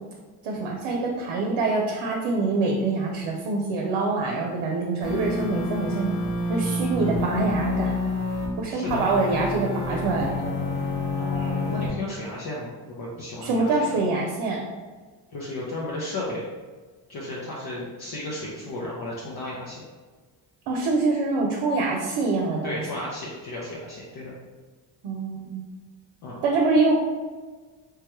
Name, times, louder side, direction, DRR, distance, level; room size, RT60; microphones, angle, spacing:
voice 1, 0.4-6.1 6.5-7.9 8.6-10.8 13.4-14.6 20.7-22.8 25.0-25.7 26.4-26.9, right 3 dB, 70° right, 0 dB, 0.7 m, -25 dB
sound 1, 5.0-8.5 8.9-11.9, left 2 dB, 75° left, 1.1 m, -28 dB
voice 2, 8.7-9.0 11.1-14.0 15.3-16.5 17.1-19.8 22.6-24.3 26.2-26.3, left 1 dB, 50° left, -5 dB, 0.8 m, -34 dB
3.4 x 2.2 x 3.0 m, 1.4 s
cardioid pair, 75°, 50 cm